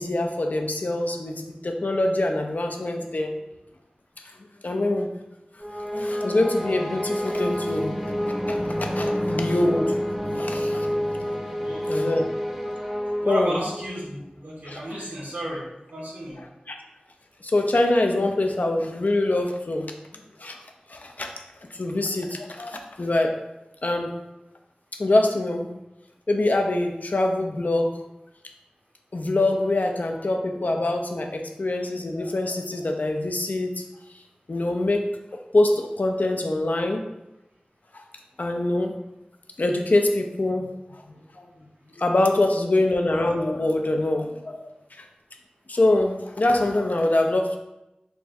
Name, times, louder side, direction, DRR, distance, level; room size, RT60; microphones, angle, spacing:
voice 1, 0.0-3.3 4.6-5.1 5.9-8.0 8.3-9.9 10.4-10.9 11.9-12.8 13.3-13.6 14.7-14.8 16.4-16.8 17.4-19.9 20.4-20.6 20.9-21.3 21.7-23.3 23.8-24.1 25.0-25.7 26.3-28.0 29.1-33.8 34.5-35.0 35.5-37.0 37.9-38.0 38.4-38.9 39.6-41.0 41.4-41.5 42.0-44.7 45.7-47.6, left 2 dB, 65° left, 4 dB, 0.5 m, -24 dB
sound 1, 5.6-14.0, equal, ahead, 0.7 m, -28 dB
voice 2, 13.2-15.6 15.9-16.4, equal, 75° right, -5 dB, 1.2 m, -32 dB
3.2 x 2.3 x 4.1 m, 0.92 s
wide cardioid pair, 45°, 3 cm